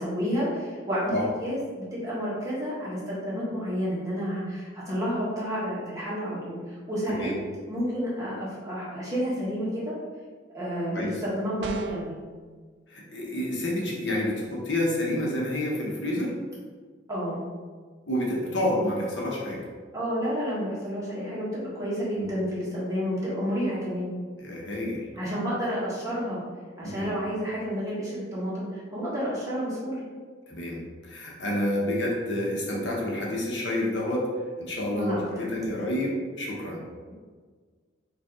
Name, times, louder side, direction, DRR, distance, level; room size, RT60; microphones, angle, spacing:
voice 1, 0.0-7.3 7.7-10.0 10.5-12.1 17.1-17.4 19.9-24.1 25.1-26.4 26.8-30.0 34.9-35.5, equal, 15° right, -8 dB, 1.3 m, -30 dB
sound 1, 11.6-12.2, right 4 dB, 60° right, 0.3 m, -34 dB
voice 2, 12.9-16.3 18.1-19.6 22.2-22.3 24.4-25.1 26.8-27.1 30.5-34.3 34.6-36.8, left 1 dB, 70° left, -3 dB, 1.0 m, -29 dB
5.1 x 2.5 x 3.6 m, 1.5 s
head